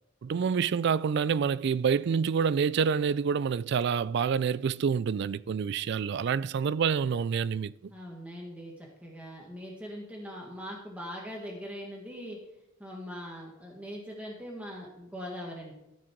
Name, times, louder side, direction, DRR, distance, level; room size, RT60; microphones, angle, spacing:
voice 1, 0.2-7.9, right 6 dB, 55° right, 0.3 m, -27 dB
voice 2, 7.9-12.4 12.8-15.7, equal, 5° right, 1.6 m, -41 dB
13.5 x 6.4 x 4.5 m
head